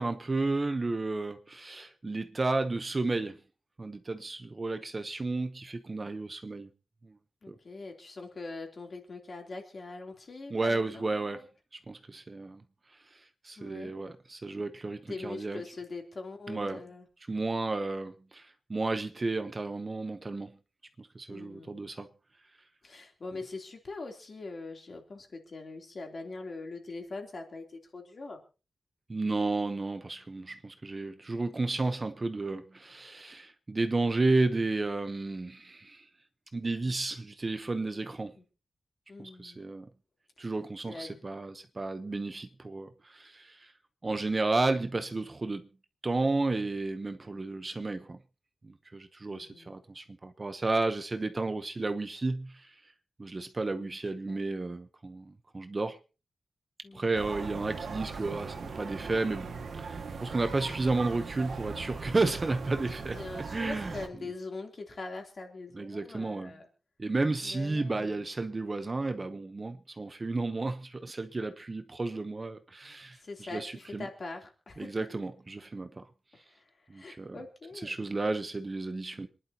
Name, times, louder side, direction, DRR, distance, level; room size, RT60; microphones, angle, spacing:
voice 1, 0.0-3.4 3.8-6.7 7.0-7.1 7.5-7.6 10.5-11.4 11.9-12.6 13.4-15.6 16.5-16.8 17.3-20.6 21.0-22.1 29.1-36.0 36.5-38.4 39.2-39.9 40.4-43.7 44.0-45.7 46.0-48.2 48.6-52.7 53.2-56.0 56.9-59.5 59.7-63.2 63.5-63.9 65.7-66.5 67.0-73.2 73.5-74.1 74.8-76.0 76.9-77.4 77.8-79.3, right 3 dB, 30° right, 0.9 m, -32 dB
voice 2, 7.4-11.5 13.6-13.9 15.1-17.0 21.3-21.9 22.8-28.4 38.3-38.4 39.1-39.6 40.8-41.3 49.3-49.7 53.8-53.9 54.3-54.4 56.8-57.1 63.0-66.7 67.4-68.2 73.1-74.9 76.3-77.9, left 3 dB, 45° left, 3.2 m, -43 dB
sound 1, 57.1-64.1, right 5 dB, 85° right, 1.8 m, -39 dB
26.5 x 11.0 x 2.9 m
wide cardioid pair, 160°, 0 cm